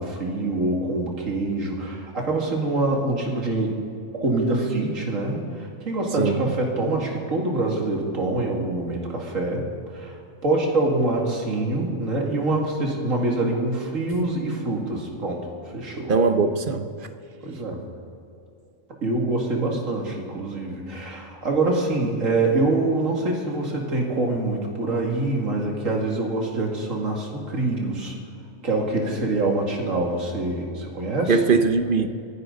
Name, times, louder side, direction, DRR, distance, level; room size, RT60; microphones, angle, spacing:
voice 1, 0.0-3.8 4.2-9.7 9.9-16.1 17.4-17.8 19.0-28.1 28.6-31.4, right 2 dB, 65° right, 0 dB, 2.7 m, -25 dB
voice 2, 6.2-6.5 16.1-16.9 31.3-32.1, right 4 dB, 45° right, 7 dB, 0.9 m, -20 dB
27.5 x 11.0 x 3.9 m, 2.6 s
omnidirectional pair, 1.5 m